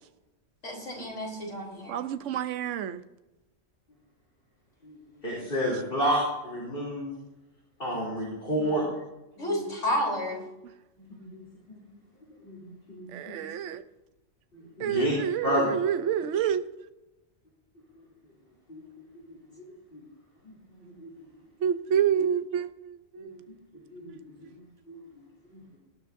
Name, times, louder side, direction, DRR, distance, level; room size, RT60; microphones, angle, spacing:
voice 1, 0.6-2.0 9.4-10.4, left 1 dB, 65° left, 3.9 m, -31 dB
voice 2, 1.9-3.0 8.6-8.7 13.1-13.8 14.8-16.6 21.6-23.4 23.7-23.9, right 9 dB, 70° right, 1.0 m, -28 dB
voice 3, 4.8-7.1 7.8-8.8 9.4-9.7 11.1-11.8 12.4-13.5 14.5-15.1 15.4-15.7 18.0-18.1 18.7-19.4 19.9-20.0 20.4-21.1 23.2-23.3 23.9-24.5 24.9-25.2 25.5-25.8, equal, 40° left, 3.3 m, -32 dB
18.5 x 12.0 x 2.6 m
omnidirectional pair, 1.4 m